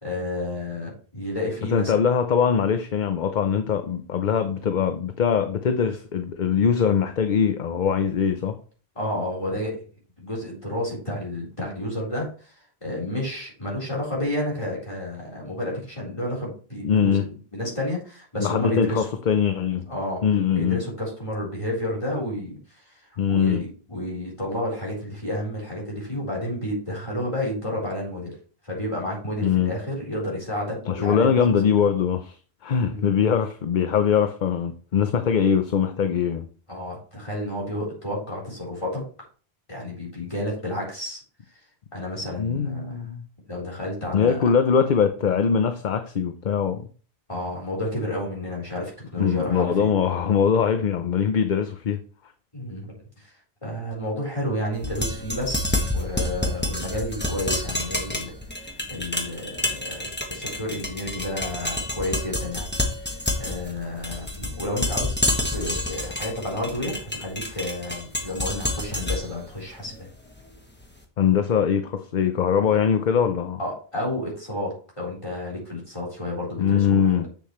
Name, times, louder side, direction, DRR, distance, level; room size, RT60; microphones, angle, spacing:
voice 1, 0.0-2.0 9.0-9.8 10.2-19.1 19.9-20.2 20.5-23.0 23.3-28.3 28.6-31.3 32.9-33.1 36.7-39.0 39.7-41.2 41.9-43.1 43.5-44.5 47.3-49.9 52.5-53.3 53.6-58.3 58.6-62.7 63.4-65.2 65.5-69.9 72.7-72.8 73.6-77.2, left 1 dB, 30° left, 4.2 m, -31 dB
voice 2, 1.7-8.5 16.8-17.2 18.4-19.9 20.2-20.8 23.2-23.6 29.4-29.7 30.9-32.4 32.6-36.5 42.4-43.2 44.1-46.9 49.2-52.0 71.2-73.6 76.6-77.3, left 7 dB, 55° left, 0.7 m, -22 dB
sound 1, 54.8-70.8, left 1 dB, 10° left, 1.3 m, -29 dB
7.6 x 7.1 x 3.1 m
omnidirectional pair, 1.1 m